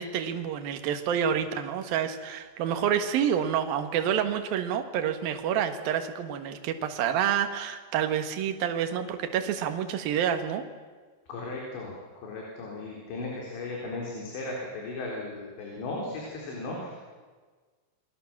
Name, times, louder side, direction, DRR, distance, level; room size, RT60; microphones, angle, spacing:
voice 1, 0.0-10.6, right 9 dB, 60° right, 7 dB, 2.8 m, -28 dB
voice 2, 11.3-16.9, left 2 dB, 60° left, -1 dB, 6.1 m, -36 dB
29.0 x 22.5 x 7.3 m, 1.4 s
omnidirectional pair, 5.8 m